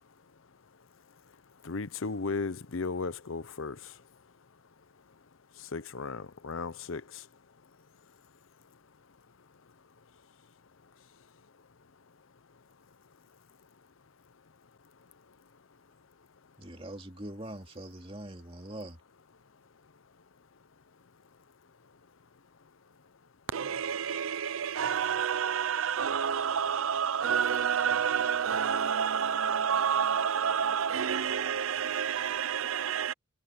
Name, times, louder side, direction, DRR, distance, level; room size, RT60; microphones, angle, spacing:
voice 1, 1.6-3.8 5.7-7.0, left 4 dB, 80° left, 0.8 m, -35 dB
voice 2, 16.6-19.0, right 1 dB, 25° right, 2.8 m, -42 dB
voice 3, 23.5-33.1, right 7 dB, 90° right, 0.6 m, -29 dB
head